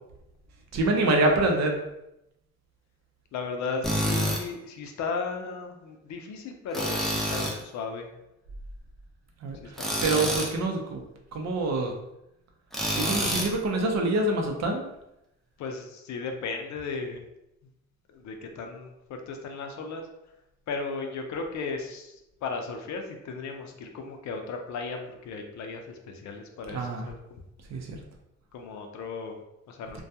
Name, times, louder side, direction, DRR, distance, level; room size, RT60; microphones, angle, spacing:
voice 1, 0.7-1.9 9.4-11.0 11.3-11.9 12.9-14.9 26.7-27.1 27.7-28.0, right 2 dB, 60° right, 2 dB, 0.6 m, -26 dB
voice 2, 3.3-8.1 9.6-10.5 15.6-17.2 18.1-20.0 20.7-27.4 28.5-30.0, left 4 dB, 70° left, 4 dB, 0.5 m, -36 dB
Tools, 3.8-4.4 6.7-7.6 9.8-10.5 12.7-13.5, equal, ahead, 0.5 m, -27 dB
2.2 x 2.2 x 2.7 m, 0.87 s
cardioid pair, 90°, 30 cm